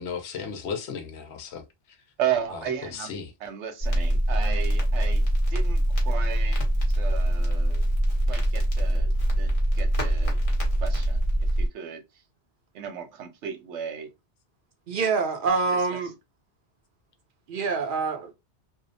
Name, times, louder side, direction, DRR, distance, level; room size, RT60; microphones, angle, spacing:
voice 1, 0.0-1.6 2.8-3.3, left 6 dB, 80° left, 0.9 m, -35 dB
voice 2, 2.2-7.9 8.3-10.4 10.8-12.0 12.7-14.1 15.7-15.8, right 9 dB, 85° right, 0.9 m, -35 dB
Crackle, 3.8-11.7, right 1 dB, 35° left, 0.8 m, -23 dB
voice 3, 14.9-16.1 17.5-18.3, right 4 dB, 60° right, 0.6 m, -26 dB
2.7 x 2.1 x 2.5 m
omnidirectional pair, 1.1 m